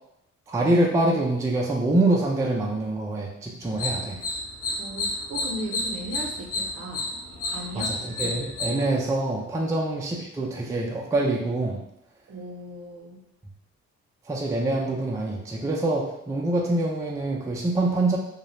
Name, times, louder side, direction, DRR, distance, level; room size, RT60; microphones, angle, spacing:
voice 1, 0.5-4.2 7.7-11.8 14.3-18.2, right 2 dB, 10° right, -2 dB, 0.3 m, -25 dB
sound 1, 3.6-8.7, left 2 dB, 50° left, 0.6 m, -30 dB
voice 2, 4.8-7.1 7.5-8.0 9.6-9.7 12.3-13.2, right 1 dB, 50° right, 0 dB, 0.6 m, -36 dB
2.3 x 2.0 x 2.9 m, 0.79 s
cardioid pair, 90°, 30 cm